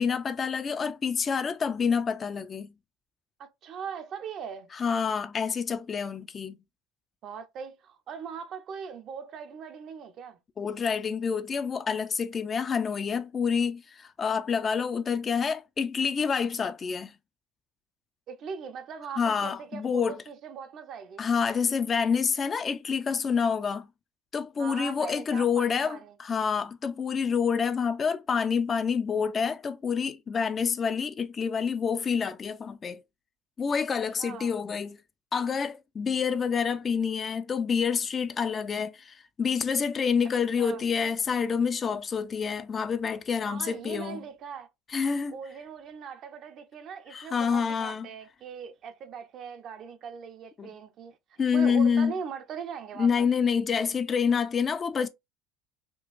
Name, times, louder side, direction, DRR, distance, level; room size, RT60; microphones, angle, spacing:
voice 1, 0.0-2.7 4.7-6.6 10.6-17.1 19.2-20.2 21.2-23.9 24.3-33.0 33.6-35.0 35.3-44.2 44.9-45.4 47.1-48.1 50.6-50.7 51.4-52.1 53.0-55.1, left 6 dB, 35° left, 0.4 m, -27 dB
voice 2, 3.4-4.7 7.2-10.4 18.3-21.2 24.6-26.2 34.2-34.5 40.6-40.8 43.4-44.7 45.3-53.3, right 7 dB, 55° right, 0.6 m, -40 dB
3.7 x 2.3 x 2.4 m
supercardioid pair, 85°, 0 cm